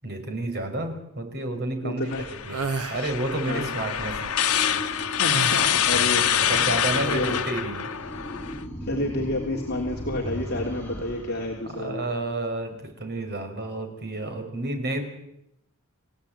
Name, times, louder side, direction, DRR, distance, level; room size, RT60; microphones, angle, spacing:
voice 1, 0.0-4.3 6.4-7.9 11.6-15.0, right 2 dB, 50° right, 5 dB, 5.6 m, -30 dB
voice 2, 1.8-2.2 3.5-3.6 5.2-6.6 6.9-7.4 8.8-12.0, left 1 dB, 45° left, -1 dB, 3.4 m, -30 dB
sound 1, 2.1-8.6, left 9 dB, 85° left, 1.4 m, -25 dB
sound 2, 2.5-3.0 5.3-6.0, right 4 dB, 85° right, 1.3 m, -30 dB
sound 3, 3.9-12.7, equal, 10° left, 5.9 m, -39 dB
29.0 x 16.5 x 9.0 m, 0.79 s
head